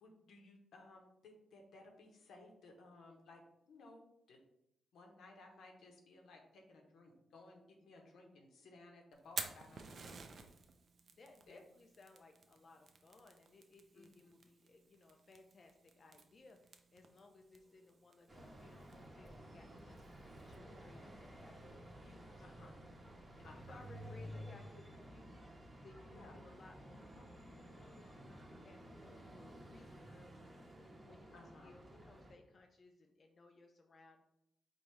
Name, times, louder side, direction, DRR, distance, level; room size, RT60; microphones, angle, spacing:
voice 1, 0.0-3.4 3.7-4.4 4.9-10.2 11.5-11.6 13.9-14.3 22.4-22.8 23.4-23.8 26.0-26.3 31.3-31.7, left 2 dB, 85° left, 2 dB, 0.8 m, -59 dB
Fire, 9.1-20.6, right 5 dB, 50° right, 0.4 m, -53 dB
voice 2, 11.1-22.4 23.4-25.5 25.8-34.2, left 3 dB, 40° left, 3 dB, 0.3 m, -62 dB
sound 1, 18.3-32.3, equal, 20° right, 0.8 m, -54 dB
4.5 x 2.6 x 3.2 m, 0.82 s
wide cardioid pair, 140°, 0 cm